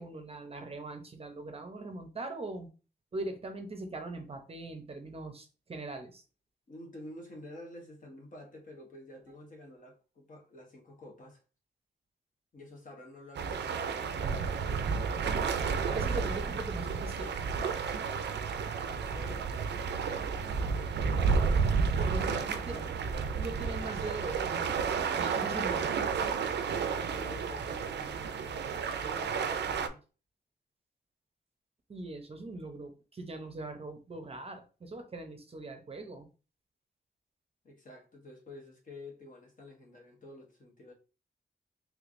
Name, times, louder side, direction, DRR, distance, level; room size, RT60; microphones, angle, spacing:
voice 1, 0.0-2.7 3.1-6.2 15.9-17.4 21.7-22.8 23.4-25.9 31.9-36.3, right 2 dB, 35° right, 0.6 m, -41 dB
voice 2, 6.7-11.4 12.5-15.2 18.8-20.4 22.2-23.0 27.0-28.7 29.0-30.0 37.6-40.9, left 1 dB, 50° left, 1.0 m, -49 dB
sound 1, 13.3-29.9, right 5 dB, 80° right, 0.4 m, -31 dB
3.2 x 3.2 x 2.5 m
wide cardioid pair, 120°, 18 cm